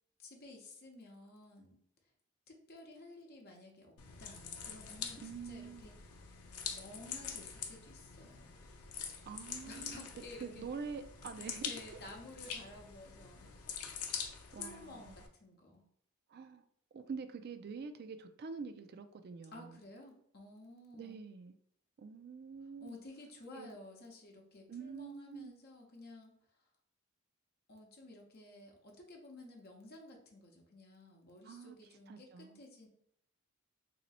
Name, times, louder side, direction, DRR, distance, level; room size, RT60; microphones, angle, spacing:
voice 1, 0.2-1.8 2.5-5.9 6.7-8.6 9.7-10.6 11.6-13.5 14.5-15.8 19.5-21.2 22.8-26.4 27.7-32.9, left 2 dB, 45° left, 0.9 m, -53 dB
sound 1, 4.0-15.3, left 7 dB, 85° left, 0.6 m, -45 dB
voice 2, 5.2-5.9 9.2-12.0 14.5-15.2 16.3-16.6 16.9-19.8 20.9-21.6 22.0-23.0 23.5-23.7 24.7-25.6 31.4-31.8 32.1-32.6, right 5 dB, 45° right, 0.3 m, -46 dB
3.0 x 2.8 x 4.1 m
head